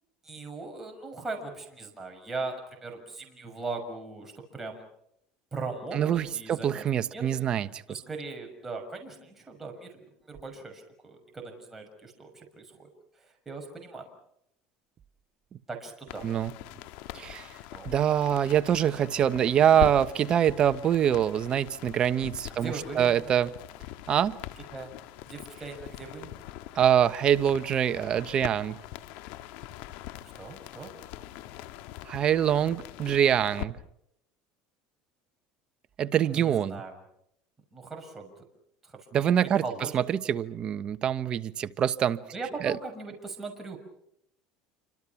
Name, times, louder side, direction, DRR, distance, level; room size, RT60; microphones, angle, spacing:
voice 1, 0.2-4.9 5.5-7.3 7.9-12.9 13.1-14.1 15.7-16.3 17.7-17.9 22.6-23.3 24.7-24.9 25.3-26.3 30.3-30.9 36.3-37.0 37.7-38.4 38.8-40.0 42.3-43.8, right 3 dB, 15° right, 6.3 m, -39 dB
voice 2, 5.9-8.0 16.2-16.5 17.1-17.5 17.8-23.5 24.1-24.4 26.7-28.8 32.1-33.8 36.0-36.8 39.1-39.6 39.9-42.2 42.6-42.8, right 9 dB, 40° right, 1.2 m, -25 dB
sound 1, 16.1-33.7, left 14 dB, 70° left, 1.8 m, -42 dB
28.5 x 26.0 x 6.0 m
supercardioid pair, 120°, 2 cm